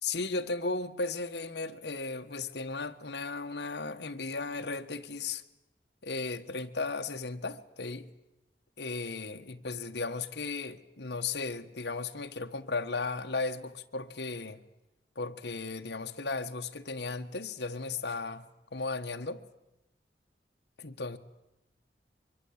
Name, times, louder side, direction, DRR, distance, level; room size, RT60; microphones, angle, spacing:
voice 1, 0.0-5.4 6.0-8.1 8.8-14.6 15.1-18.5 18.7-19.4 20.8-21.2, left 3 dB, 70° left, 1.4 m, -35 dB
24.0 x 23.5 x 8.8 m
head